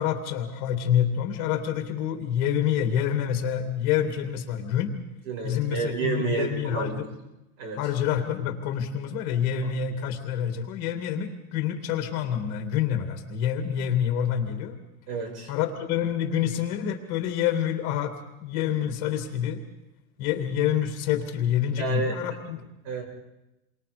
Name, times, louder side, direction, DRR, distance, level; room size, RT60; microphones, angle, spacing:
voice 1, 0.0-4.9 5.4-7.1 7.8-14.8 15.5-18.1 18.4-19.6 20.2-22.7, left 9 dB, 35° left, 6 dB, 2.3 m, -27 dB
voice 2, 5.2-7.0 7.6-7.8 15.1-15.5 21.8-22.2 22.8-23.0, right 5 dB, 60° right, 1 dB, 7.5 m, -30 dB
29.5 x 24.0 x 5.1 m, 0.95 s
supercardioid pair, 175°, 43 cm